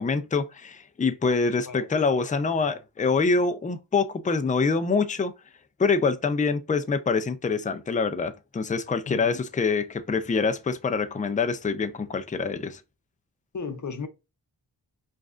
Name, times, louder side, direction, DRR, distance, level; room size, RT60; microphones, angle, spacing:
voice 1, 0.0-5.3 5.8-12.8, left 4 dB, 20° left, 0.4 m, -25 dB
voice 2, 9.1-9.4 13.5-14.1, left 5 dB, 40° left, 0.7 m, -34 dB
4.8 x 2.4 x 2.4 m
wide cardioid pair, 65°, 45 cm